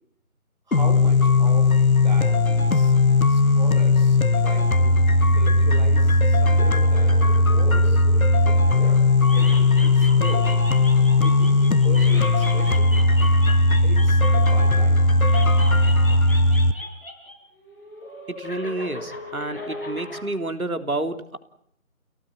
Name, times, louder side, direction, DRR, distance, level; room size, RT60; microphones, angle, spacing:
sound 1, 0.7-16.7, left 2 dB, 75° left, 1.5 m, -18 dB
voice 1, 0.7-2.9 3.3-7.2 7.5-8.0 9.3-10.6 11.2-13.0 13.8-15.1, right 2 dB, 30° right, 3 dB, 4.6 m, -38 dB
sound 2, 6.6-9.0 9.2-14.8 15.2-17.3 17.6-20.2, left 1 dB, 40° left, 6.1 m, -37 dB
voice 2, 18.3-21.4, right 2 dB, 80° right, 7 dB, 3.5 m, -29 dB
29.5 x 18.5 x 9.1 m, 0.69 s
figure-of-eight pair, 165°, 42 cm